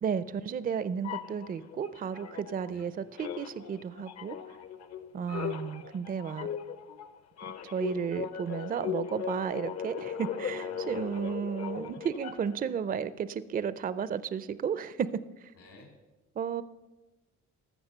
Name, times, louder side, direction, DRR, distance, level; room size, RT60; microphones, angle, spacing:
voice 1, 0.0-4.4 5.1-6.5 7.4-15.1 16.4-16.6, right 7 dB, 30° right, 16 dB, 0.4 m, -33 dB
sound 1, 1.0-2.9 3.1-12.7, left 8 dB, 60° left, 0.8 m, -38 dB
voice 2, 5.2-5.6 10.5-11.3 15.5-15.9, left 3 dB, 75° left, 2 dB, 3.5 m, -55 dB
14.0 x 6.0 x 6.6 m, 1.2 s
cardioid pair, 90°, 30 cm